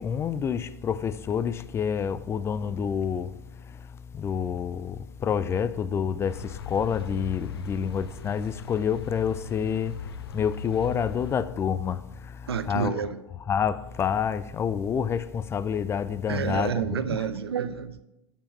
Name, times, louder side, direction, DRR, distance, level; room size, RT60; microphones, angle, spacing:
voice 1, 0.0-3.3 4.2-5.0 5.2-6.4 6.7-9.9 10.3-12.0 12.7-13.0 13.5-16.7, left 7 dB, 20° left, 0.4 m, -27 dB
sound 1, 6.3-11.4, left 7 dB, 70° left, 0.7 m, -39 dB
voice 2, 12.5-13.2 16.3-18.0, right 7 dB, 75° right, 0.7 m, -29 dB
7.1 x 5.5 x 7.1 m
figure-of-eight pair, 95°, 13 cm